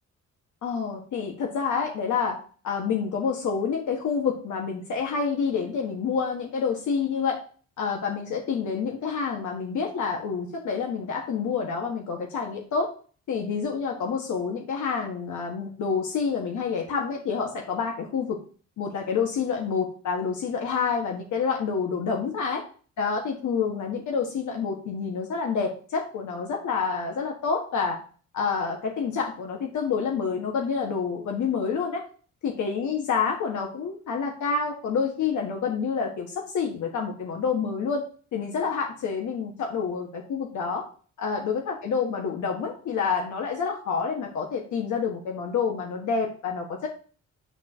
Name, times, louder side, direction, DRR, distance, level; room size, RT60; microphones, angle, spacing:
voice 1, 0.6-2.4 2.6-7.4 7.8-12.9 13.3-18.4 18.8-22.6 23.0-28.0 28.3-32.0 32.4-38.0 38.3-40.8 41.2-46.9, left 5 dB, 75° left, 1 dB, 1.5 m, -28 dB
8.8 x 3.7 x 4.5 m, 0.40 s
cardioid pair, 120°, 30 cm